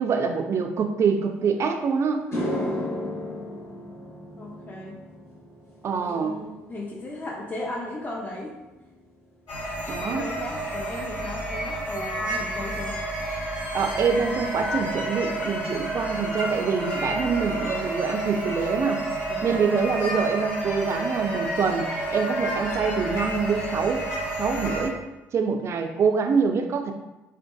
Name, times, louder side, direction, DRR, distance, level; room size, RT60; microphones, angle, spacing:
voice 1, 0.0-2.3 5.8-6.4 9.9-10.3 13.7-19.0 19.4-24.1 24.4-25.0 25.3-26.9, right 5 dB, 45° right, 5 dB, 0.3 m, -25 dB
sound 1, 1.6-1.7 2.1-10.6 10.9-11.3 14.9-15.0 16.7-16.8 17.1-17.2 17.5-18.0, left 1 dB, 40° left, 1.0 m, -36 dB
voice 2, 4.4-5.0 6.0-8.5 10.0-13.0 19.3-19.6, left 1 dB, 25° left, -3 dB, 0.5 m, -36 dB
sound 2, 9.5-24.9, right 1 dB, 65° left, 1.0 m, -30 dB
2.5 x 2.2 x 2.2 m, 1.0 s
hypercardioid pair, 55°, 7 cm